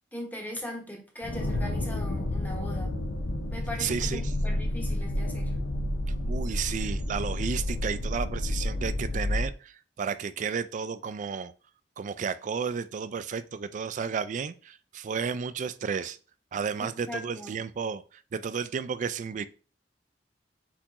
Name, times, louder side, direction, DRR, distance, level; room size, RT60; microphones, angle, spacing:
voice 1, 0.1-2.9 3.5-5.5 16.8-17.6, left 1 dB, 10° left, 1.0 m, -40 dB
sound 1, 1.2-9.5, left 1 dB, 90° left, 0.7 m, -30 dB
voice 2, 3.8-4.3 6.3-11.5 12.0-16.2 16.5-19.5, right 6 dB, 45° right, 0.3 m, -32 dB
4.3 x 4.2 x 2.9 m
head